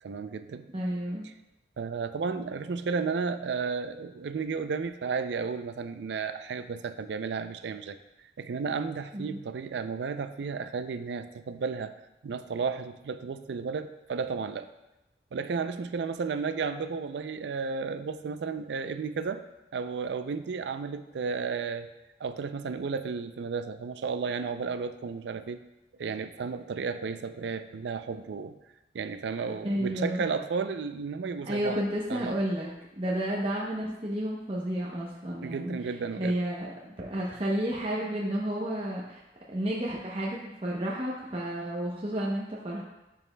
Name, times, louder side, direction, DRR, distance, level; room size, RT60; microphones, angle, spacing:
voice 1, 0.0-0.7 1.8-8.0 8.4-11.9 12.2-14.7 15.3-19.4 19.7-21.9 22.2-25.6 26.0-28.6 28.9-31.8 32.1-32.4 35.4-36.4, right 5 dB, 85° right, 10 dB, 0.4 m, -33 dB
voice 2, 0.7-1.3 9.1-9.4 29.6-30.2 31.4-35.7 36.2-39.2 39.5-42.8, right 1 dB, 30° right, -4 dB, 0.7 m, -31 dB
11.0 x 4.9 x 2.2 m, 0.95 s
head